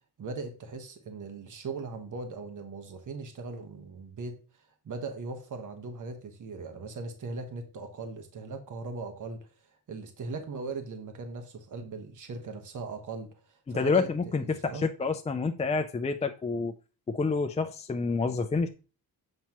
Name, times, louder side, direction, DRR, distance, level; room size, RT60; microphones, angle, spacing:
voice 1, 0.2-4.4 4.8-9.5 9.9-14.9, right 3 dB, 50° right, 1.2 m, -39 dB
voice 2, 13.7-16.8 17.1-18.7, left 4 dB, 20° left, 0.3 m, -28 dB
7.6 x 5.6 x 2.9 m
wide cardioid pair, 160°, 38 cm